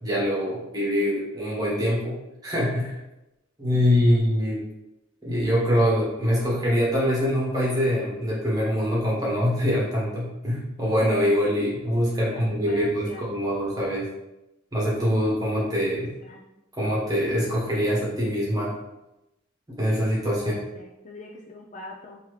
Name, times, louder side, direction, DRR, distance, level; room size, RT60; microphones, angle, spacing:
voice 1, 0.0-2.1 2.4-2.9 3.6-4.6 5.2-14.1 14.7-16.1 16.8-18.7 19.8-20.5, equal, 20° right, -6 dB, 1.2 m, -24 dB
voice 2, 3.7-4.1 12.2-13.3 16.2-16.4 20.2-22.2, left 3 dB, 35° left, -1 dB, 0.4 m, -43 dB
3.9 x 2.7 x 3.2 m, 0.93 s
head